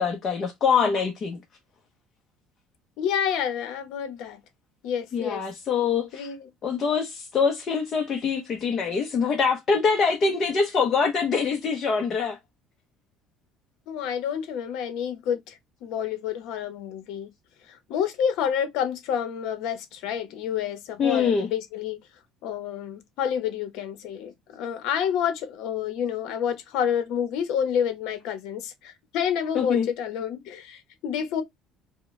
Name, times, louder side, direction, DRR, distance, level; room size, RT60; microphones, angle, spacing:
voice 1, 0.0-1.4 5.1-6.2 6.6-12.4 21.0-21.5 29.5-29.9, left 5 dB, 35° left, 0.8 m, -24 dB
voice 2, 3.0-4.4 4.8-5.4 6.1-6.5 13.9-17.3 17.7-22.0 22.4-31.4, left 8 dB, 70° left, 0.9 m, -29 dB
4.9 x 2.2 x 3.1 m
cardioid pair, 155°, 0 cm